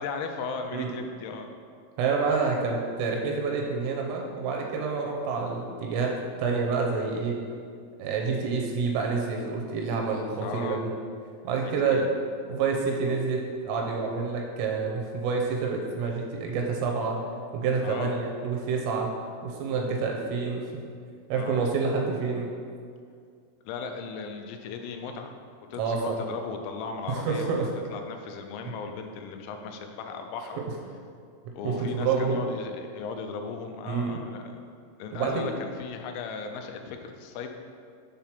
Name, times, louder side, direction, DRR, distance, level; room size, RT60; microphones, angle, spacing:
voice 1, 0.0-1.5 10.4-10.8 11.8-12.1 17.8-18.2 21.3-21.6 23.7-25.3 25.7-30.7 31.6-34.6 35.0-37.5, left 5 dB, 90° left, 5 dB, 3.4 m, -37 dB
voice 2, 2.0-7.4 8.0-10.9 11.4-12.1 12.5-17.2 17.5-19.1 19.4-20.7 21.3-22.5 25.7-26.2 27.1-27.7 31.6-32.4 33.9-34.1 35.1-35.4, right 5 dB, 80° right, 0 dB, 3.1 m, -28 dB
8.6 x 3.8 x 5.8 m, 2.2 s
omnidirectional pair, 5.9 m